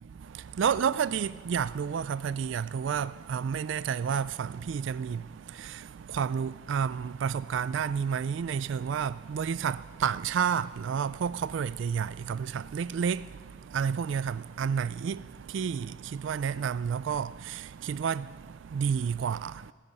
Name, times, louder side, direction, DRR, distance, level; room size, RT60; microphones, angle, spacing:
voice 1, 0.0-19.7, right 7 dB, 70° right, 0.3 m, -31 dB
20.5 x 10.0 x 5.4 m
head